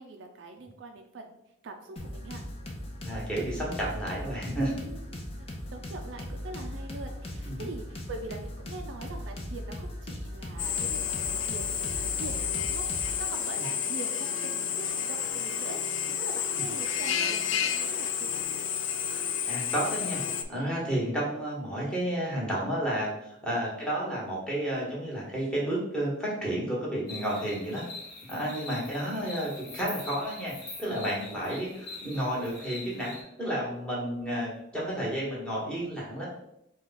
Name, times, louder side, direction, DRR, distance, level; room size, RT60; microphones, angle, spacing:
voice 1, 0.0-1.4 1.6-2.4 4.8-5.1 5.4-5.5 5.7-18.4 20.8-20.9 23.5-23.7 28.7-28.9 31.3-31.7, right 3 dB, 65° right, 4 dB, 0.4 m, -43 dB
sound 1, 2.0-13.2, left 1 dB, 30° left, 0.7 m, -39 dB
voice 2, 3.0-4.7 7.5-7.6 13.6-13.7 16.5-16.7 19.5-20.2 20.5-27.8 28.3-30.5 30.8-33.1 33.4-36.3, right 1 dB, 5° left, -5 dB, 1.2 m, -31 dB
Drill, 10.6-20.4, left 8 dB, 75° left, 0.4 m, -30 dB
sound 2, 27.1-33.2, left 3 dB, 50° left, 1.4 m, -43 dB
4.6 x 2.3 x 4.1 m, 0.81 s
head